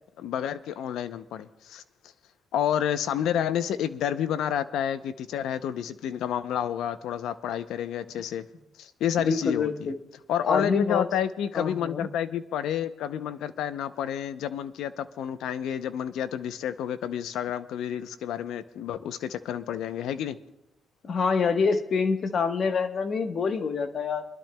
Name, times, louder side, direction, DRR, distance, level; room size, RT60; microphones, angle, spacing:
voice 1, 0.2-1.8 2.5-8.5 8.8-9.9 10.3-20.4, left 9 dB, 85° left, 12 dB, 0.6 m, -30 dB
voice 2, 9.2-10.0 10.4-11.1 11.5-12.1 21.0-24.2, left 5 dB, 50° left, 7 dB, 1.1 m, -26 dB
27.0 x 12.0 x 2.3 m, 0.89 s
cardioid pair, 90°, 0 cm